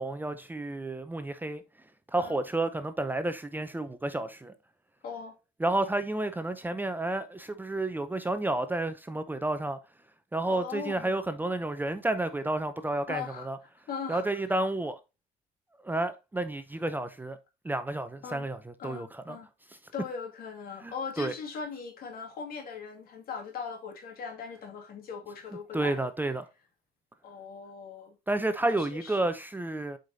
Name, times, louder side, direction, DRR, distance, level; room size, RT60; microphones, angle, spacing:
voice 1, 0.0-1.6 2.1-4.5 5.6-9.8 10.3-13.6 14.1-15.0 15.8-17.4 17.6-19.4 19.7-19.8 20.8-21.3 25.7-26.5 28.3-30.0, right 2 dB, 10° right, 0.6 m, -31 dB
voice 2, 5.0-5.3 10.5-11.2 13.1-13.5 13.9-14.2 18.2-18.5 18.8-19.5 19.9-26.0 27.2-28.2 28.6-29.1, left 6 dB, 60° left, 2.3 m, -39 dB
7.7 x 5.0 x 2.7 m
cardioid pair, 110°, 17 cm